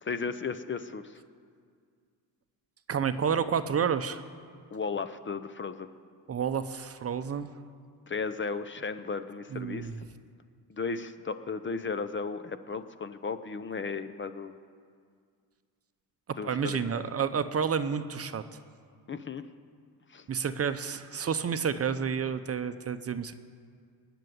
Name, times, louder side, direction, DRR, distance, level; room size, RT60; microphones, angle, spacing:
voice 1, 0.0-1.2 4.7-5.9 8.1-10.1 10.7-14.6 16.4-17.0 19.1-19.4 20.1-20.3, left 5 dB, 25° left, 12 dB, 0.7 m, -35 dB
voice 2, 2.9-4.2 6.3-7.5 9.5-10.0 16.4-18.4 20.3-23.3, right 7 dB, 35° right, 11 dB, 0.7 m, -30 dB
20.0 x 7.0 x 9.4 m, 2.1 s
cardioid pair, 90°, 44 cm